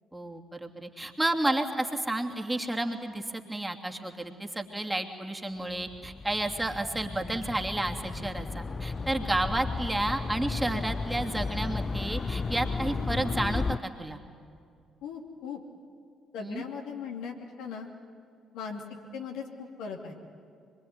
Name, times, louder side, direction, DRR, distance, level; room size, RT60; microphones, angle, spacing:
voice 1, 0.1-14.2 16.4-16.6, right 1 dB, 10° right, 3 dB, 2.7 m, -31 dB
sound 1, 5.8-13.8, left 4 dB, 35° left, 0.6 m, -34 dB
voice 2, 15.0-15.6 16.3-17.9 18.5-18.8 19.1-20.2, left 6 dB, 70° left, 1 dB, 2.6 m, -38 dB
24.5 x 22.5 x 9.7 m, 2.4 s
figure-of-eight pair, 45°, 0 cm